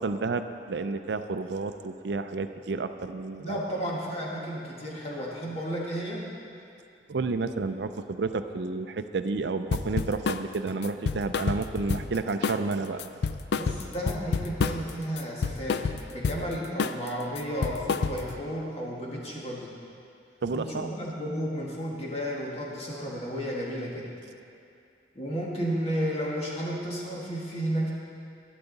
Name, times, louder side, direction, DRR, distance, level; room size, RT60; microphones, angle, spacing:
voice 1, 0.0-3.6 7.1-13.1 20.4-20.9, right 3 dB, 70° right, 9 dB, 0.5 m, -31 dB
voice 2, 3.4-6.3 13.5-19.7 20.5-24.1 25.2-27.9, equal, 35° left, -4 dB, 1.8 m, -33 dB
sound 1, 9.7-10.5 10.8-12.2 12.4-12.7 13.0-14.9 15.2-16.4 16.8-17.1 17.4-18.4, left 5 dB, 60° left, 0.4 m, -29 dB
12.0 x 11.5 x 4.0 m, 2.6 s
head